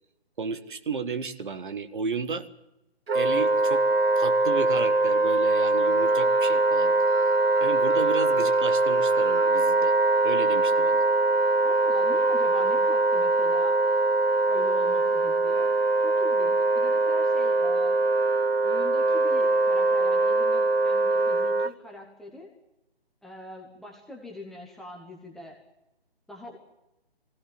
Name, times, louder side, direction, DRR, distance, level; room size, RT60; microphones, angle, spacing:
voice 1, 0.4-2.5 3.1-3.9 4.2-7.3 7.6-9.9 10.2-11.0, right 5 dB, 55° right, 9 dB, 1.7 m, -33 dB
Wind instrument woodwind instrument, 3.1-21.7, right 2 dB, 75° right, 1.1 m, -22 dB
Wind instrument woodwind instrument 2, 5.7-9.5, right 7 dB, 30° right, 4.2 m, -42 dB
voice 2, 11.6-13.8 14.5-15.7 16.0-18.0 18.6-22.5 23.2-25.6 26.3-26.6, left 2 dB, ahead, -1 dB, 0.9 m, -43 dB
21.0 x 17.0 x 9.0 m, 0.92 s
figure-of-eight pair, 150°, 31 cm